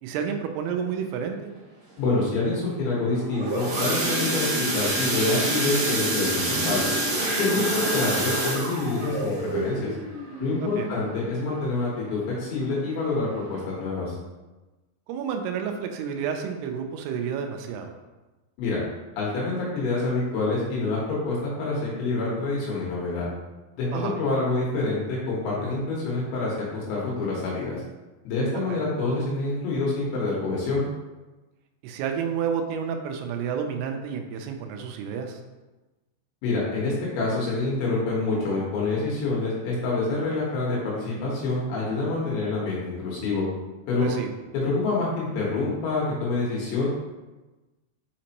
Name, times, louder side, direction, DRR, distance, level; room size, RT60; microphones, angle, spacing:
voice 1, 0.0-1.5 7.5-7.9 10.6-10.9 15.1-17.9 23.9-24.2 28.5-28.9 31.8-35.4 44.0-44.3, right 7 dB, 85° right, 4 dB, 2.4 m, -30 dB
voice 2, 2.0-6.9 7.3-9.9 10.4-14.2 18.6-18.8 19.2-23.3 23.8-27.8 28.3-30.9 36.4-43.4 43.9-44.1 44.5-46.9, left 3 dB, 75° left, -5 dB, 3.5 m, -27 dB
sound 1, 3.1-11.8 12.2-12.5 12.8-12.9 13.3-13.4, right 2 dB, 55° right, 2.1 m, -27 dB
6.3 x 5.1 x 2.9 m, 1.1 s
omnidirectional pair, 5.2 m